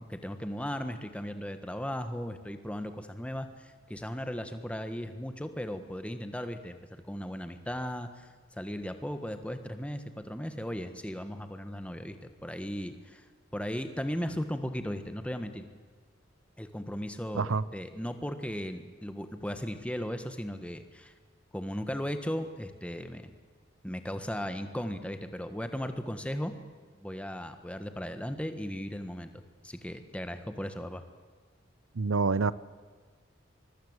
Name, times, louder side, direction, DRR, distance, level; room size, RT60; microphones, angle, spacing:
voice 1, 0.0-13.2 13.5-15.7 16.6-21.1 21.5-23.3 23.8-26.5 27.0-31.0, equal, 5° left, 8 dB, 1.4 m, -37 dB
voice 2, 31.9-32.5, right 4 dB, 90° right, 19 dB, 0.8 m, -26 dB
24.5 x 22.5 x 8.1 m, 1.5 s
head